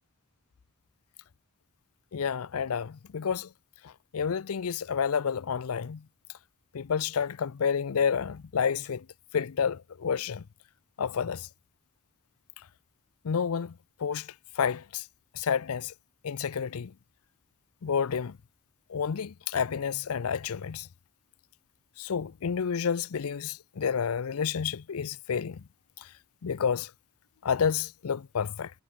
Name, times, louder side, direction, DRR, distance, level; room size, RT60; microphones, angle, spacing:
voice 1, 2.1-3.5 3.8-6.0 6.7-9.1 9.3-10.4 11.0-11.5 13.2-13.7 14.0-15.0 15.3-15.9 16.2-16.9 17.8-18.4 18.9-20.9 22.0-25.6 26.0-26.1 26.4-26.9 27.4-28.7, left 7 dB, 80° left, 0.5 m, -30 dB
head